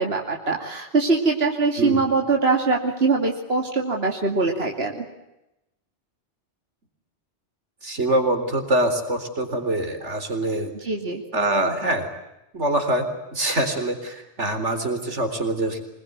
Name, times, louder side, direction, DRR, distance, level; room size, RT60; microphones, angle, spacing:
voice 1, 0.0-5.0 10.8-11.2, right 3 dB, 60° right, 1 dB, 2.9 m, -22 dB
voice 2, 7.8-10.7 11.3-12.1 12.5-15.8, right 1 dB, 80° right, 7 dB, 4.3 m, -24 dB
26.0 x 21.0 x 9.4 m, 0.91 s
omnidirectional pair, 1.2 m